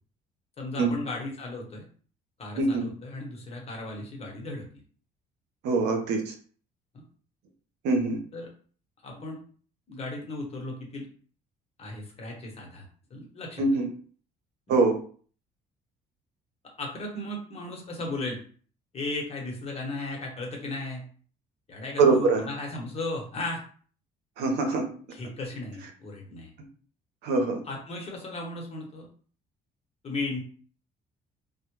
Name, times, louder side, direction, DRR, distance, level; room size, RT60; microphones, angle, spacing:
voice 1, 0.6-1.8 2.4-4.7 6.9-7.0 8.3-8.5 9.0-9.4 9.9-11.1 11.8-12.8 13.1-13.6 16.8-18.4 18.9-21.1 21.7-23.6 25.1-26.5 27.7-29.1 30.0-30.4, left 2 dB, 35° left, 0 dB, 0.9 m, -35 dB
voice 2, 2.6-2.9 5.6-6.3 7.8-8.2 13.6-13.9 14.7-15.0 22.0-22.4 24.4-24.8 27.2-27.6, right 3 dB, 85° right, 3 dB, 0.6 m, -23 dB
2.1 x 2.0 x 3.0 m, 0.43 s
cardioid pair, 110°, 17 cm